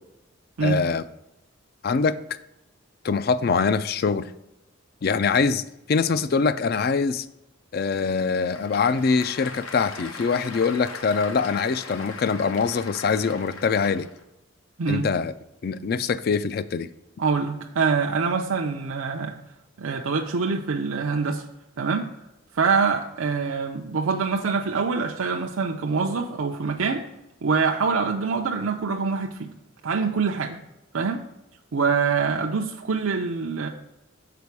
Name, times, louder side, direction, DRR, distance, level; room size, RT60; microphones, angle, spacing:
voice 1, 0.6-1.0 1.8-2.2 3.0-4.3 5.0-7.3 7.7-14.1 14.9-15.3 15.6-16.9, left 5 dB, 45° left, 15 dB, 0.3 m, -23 dB
Applause / Crowd, 8.2-14.2, left 3 dB, 90° left, 1.0 m, -40 dB
voice 2, 17.2-19.4 19.8-21.4 21.8-22.1 22.5-27.0 27.4-29.5 29.8-30.6 30.9-31.2 31.7-33.7, right 5 dB, 80° right, 2 dB, 0.6 m, -25 dB
6.9 x 5.1 x 4.6 m, 0.93 s
head